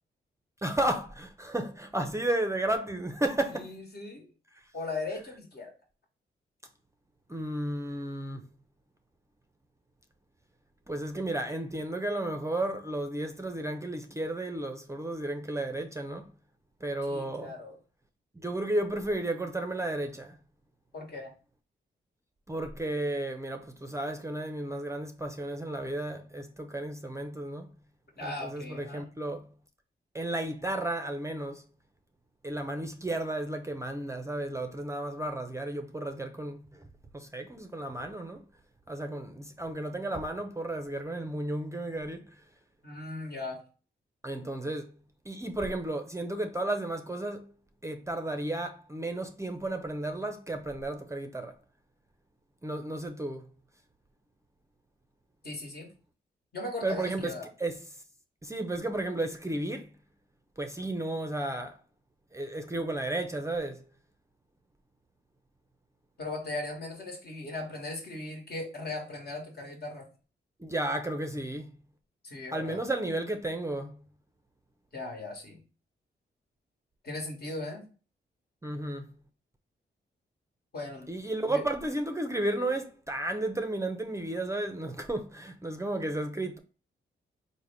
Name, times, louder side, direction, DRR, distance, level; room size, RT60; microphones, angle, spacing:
voice 1, 0.6-3.7 7.3-8.5 10.9-16.3 16.8-17.5 18.3-20.4 22.5-27.7 28.2-29.5 30.1-31.6 32.4-36.9 37.1-38.4 38.9-42.4 44.2-44.9 45.3-47.5 47.8-51.5 52.6-53.5 56.8-57.3 57.6-57.8 58.4-59.9 60.6-61.8 62.3-63.8 70.6-71.7 72.5-74.0 78.6-79.1 81.1-86.6, right 1 dB, 15° right, 0.5 m, -33 dB
voice 2, 3.5-4.3 4.7-5.7 17.1-17.7 20.9-21.3 28.2-29.1 42.8-43.6 55.4-55.9 56.5-57.5 66.2-70.1 72.2-72.8 74.9-75.6 77.0-77.9 80.7-81.1 81.5-81.6, left 2 dB, 55° left, 1.3 m, -38 dB
3.4 x 2.1 x 3.3 m
supercardioid pair, 50°, 20 cm